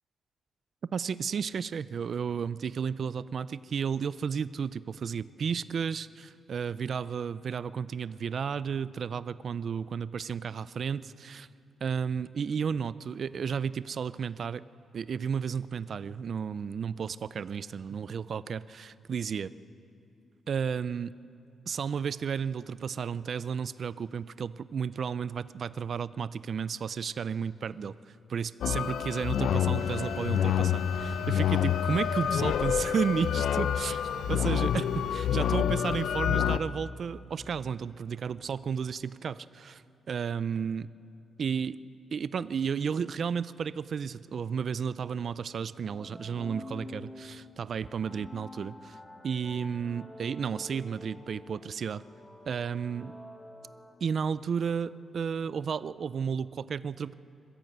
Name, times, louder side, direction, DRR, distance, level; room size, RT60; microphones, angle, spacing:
voice 1, 0.9-11.5 11.8-14.6 14.9-19.5 20.5-21.1 21.7-40.9 41.4-41.7 42.1-49.0 49.2-52.0 52.5-53.2 54.0-57.1, right 6 dB, 45° right, 16 dB, 0.4 m, -33 dB
sound 1, 28.6-36.6, left 9 dB, 70° left, 0.6 m, -28 dB
sound 2, 29.8-35.5, right 6 dB, 60° right, 1.1 m, -48 dB
sound 3, 45.8-54.4, left 1 dB, 10° left, 1.3 m, -48 dB
22.0 x 15.0 x 7.9 m, 2.6 s
wide cardioid pair, 170°, 0 cm